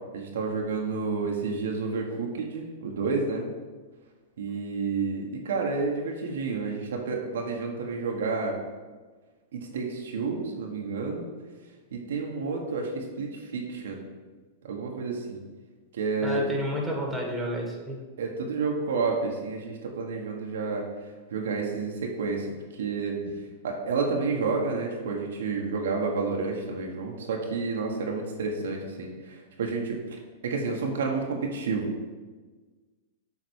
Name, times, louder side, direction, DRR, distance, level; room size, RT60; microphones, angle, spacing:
voice 1, 0.1-3.5 4.4-8.6 9.5-11.3 11.9-14.1 14.6-15.4 15.9-16.4 18.2-20.9 21.3-23.2 23.6-31.9, right 4 dB, 75° right, 0 dB, 1.3 m, -30 dB
voice 2, 16.2-18.0, equal, 5° right, -1 dB, 2.1 m, -30 dB
7.3 x 4.0 x 6.3 m, 1.4 s
hypercardioid pair, 115°, 0 cm